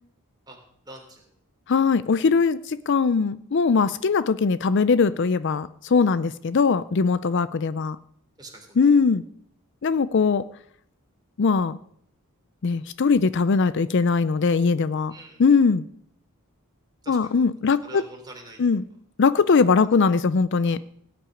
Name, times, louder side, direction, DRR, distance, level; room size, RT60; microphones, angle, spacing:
voice 1, 0.8-1.3 8.4-8.8 15.1-15.4 17.0-17.4 17.8-18.8, right 2 dB, 20° right, 1 dB, 3.4 m, -44 dB
voice 2, 1.7-8.0 8.8-9.3 9.8-10.4 11.4-11.8 12.6-15.1 15.4-15.8 17.1-18.0 18.6-18.8 19.2-20.8, left 5 dB, 55° left, 16 dB, 0.4 m, -21 dB
17.5 x 6.1 x 9.8 m, 0.69 s
head